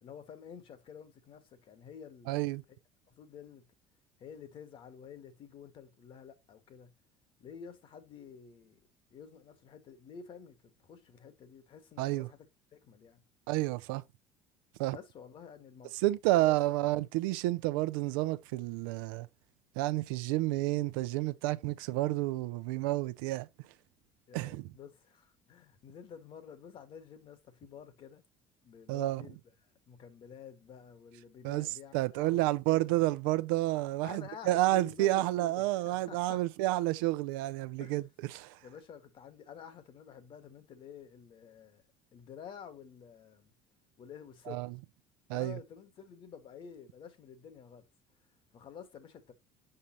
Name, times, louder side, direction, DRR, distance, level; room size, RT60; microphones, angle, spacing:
voice 1, 0.0-2.3 3.1-3.7 4.2-6.9 7.4-8.8 9.1-12.4 12.8-13.2 14.9-15.9 16.3-16.8 24.3-28.2 28.6-29.4 29.9-33.0 34.0-36.5 37.8-38.0 38.6-41.8 42.1-43.5 44.0-44.7 45.3-47.8 48.5-49.3, left 7 dB, 50° left, 1.6 m, -50 dB
voice 2, 2.3-2.6 12.0-12.3 13.5-14.0 14.8-15.0 16.0-19.3 19.8-23.5 24.3-24.7 28.9-29.2 31.4-31.7 31.9-38.0 38.3-38.6 44.5-44.7 45.3-45.6, right 17 dB, 85° right, 0.6 m, -30 dB
6.6 x 5.6 x 2.9 m
supercardioid pair, 100°, 11 cm